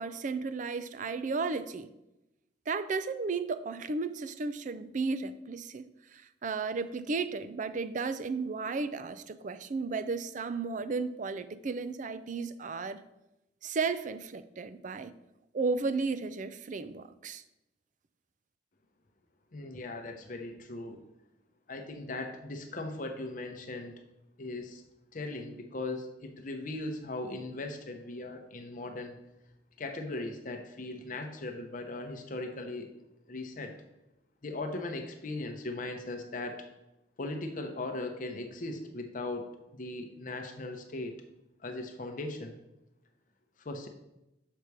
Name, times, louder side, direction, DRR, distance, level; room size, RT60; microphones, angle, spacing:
voice 1, 0.0-1.9 2.7-5.9 6.1-13.0 13.6-15.1 15.5-17.4, right 4 dB, 45° right, 13 dB, 0.4 m, -34 dB
voice 2, 19.5-21.0 21.7-23.9 24.4-24.8 25.1-29.2 29.8-32.9 33.3-33.7 34.4-36.7 37.2-39.4 39.7-41.1 41.6-42.5 43.6-43.9, left 2 dB, 45° left, 4 dB, 0.8 m, -38 dB
6.7 x 5.8 x 4.7 m, 0.91 s
head